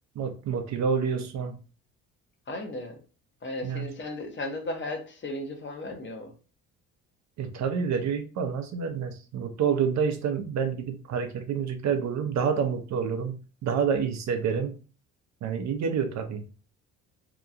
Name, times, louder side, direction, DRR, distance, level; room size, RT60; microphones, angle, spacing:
voice 1, 0.2-1.6 3.6-3.9 7.4-13.4 13.6-14.7 15.4-16.5, right 6 dB, 55° right, 0.6 m, -28 dB
voice 2, 2.5-3.0 3.4-6.3, left 2 dB, 35° left, 0.8 m, -35 dB
2.9 x 2.2 x 2.5 m
supercardioid pair, 65°, 33 cm